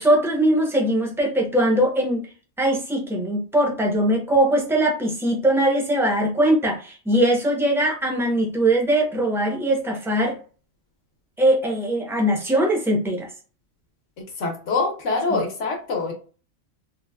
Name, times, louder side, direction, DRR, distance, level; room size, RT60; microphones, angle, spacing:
voice 1, 0.0-2.2 2.6-10.4 11.4-13.3 15.3-15.4, right 1 dB, 5° right, -1 dB, 0.6 m, -21 dB
voice 2, 14.4-16.1, left 3 dB, 70° left, 0 dB, 1.3 m, -24 dB
3.8 x 2.1 x 2.3 m, 0.37 s
omnidirectional pair, 1.4 m